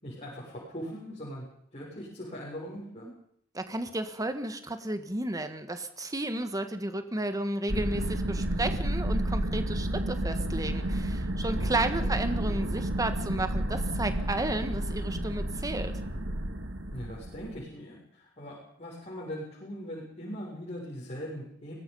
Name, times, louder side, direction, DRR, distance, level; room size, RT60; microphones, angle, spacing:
voice 1, 0.0-1.4 1.7-3.1 11.8-12.2 16.9-21.7, equal, 30° left, -6 dB, 6.7 m, -40 dB
voice 2, 3.5-15.9, right 2 dB, 20° right, 8 dB, 1.5 m, -33 dB
sound 1, 7.7-17.6, right 1 dB, 70° right, 2.2 m, -31 dB
24.0 x 19.5 x 5.6 m, 0.67 s
head